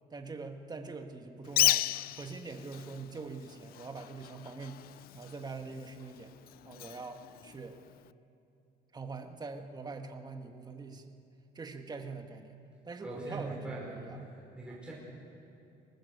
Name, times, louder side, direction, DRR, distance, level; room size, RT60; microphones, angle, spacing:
voice 1, 0.1-4.9 5.1-6.3 6.6-7.8 8.9-11.2 11.5-12.6 12.8-14.3 14.7-14.8, right 4 dB, 25° right, 5 dB, 1.7 m, -43 dB
Bird, 1.4-8.1, left 15 dB, 65° left, 0.4 m, -35 dB
voice 2, 13.0-14.0 14.3-14.9, right 2 dB, 5° right, -5 dB, 5.2 m, -41 dB
23.5 x 19.0 x 6.8 m, 2.7 s
cardioid pair, 110°, 17 cm